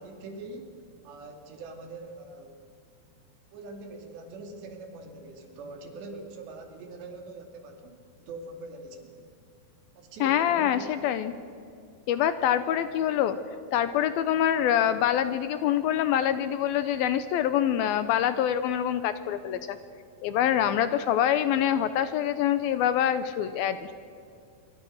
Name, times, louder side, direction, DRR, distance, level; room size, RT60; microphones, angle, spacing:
voice 1, 0.0-2.6 3.5-9.3 10.0-10.9, right 2 dB, 85° right, 3 dB, 4.8 m, -43 dB
voice 2, 10.2-11.3 12.1-13.4 13.7-19.8 20.2-23.9, left 10 dB, 80° left, 11 dB, 2.3 m, -25 dB
26.0 x 23.5 x 6.5 m, 2.4 s
omnidirectional pair, 4.8 m